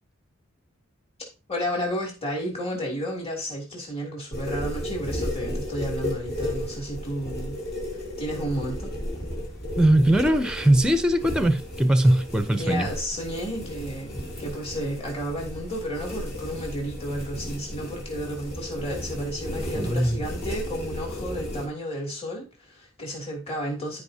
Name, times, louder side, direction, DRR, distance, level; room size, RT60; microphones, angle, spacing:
voice 1, 1.5-7.6 8.2-8.9 12.6-24.0, equal, 30° left, 2.8 m, -32 dB
sound 1, 4.3-21.7, left 1 dB, 45° left, 3.1 m, -34 dB
voice 2, 9.8-12.9 19.7-20.2, right 1 dB, 5° right, 0.5 m, -20 dB
14.0 x 5.0 x 2.8 m
head